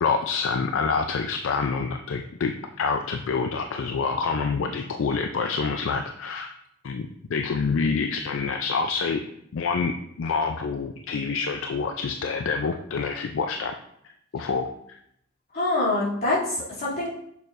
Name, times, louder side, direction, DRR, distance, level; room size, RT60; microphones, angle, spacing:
voice 1, 0.0-2.5 2.8-6.5 6.8-9.2 9.5-9.9 10.2-13.7 14.3-15.0, left 5 dB, 75° left, 6 dB, 0.4 m, -27 dB
voice 2, 15.5-17.1, left 2 dB, 50° left, -8 dB, 2.6 m, -25 dB
6.8 x 6.5 x 2.5 m, 0.73 s
head